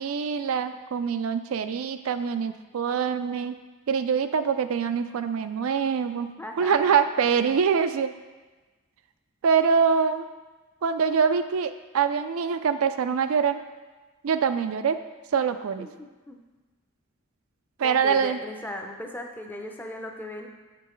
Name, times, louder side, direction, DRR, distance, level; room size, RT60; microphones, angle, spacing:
voice 1, 0.0-3.5 3.9-6.3 6.6-8.1 9.4-10.3 10.8-13.6 14.2-15.0 15.3-15.9 17.8-18.4, right 6 dB, 70° right, 10 dB, 0.4 m, -24 dB
voice 2, 6.4-7.0 15.8-16.4 17.8-20.5, left 1 dB, 10° left, 2 dB, 0.5 m, -38 dB
7.7 x 6.8 x 3.1 m, 1.2 s
head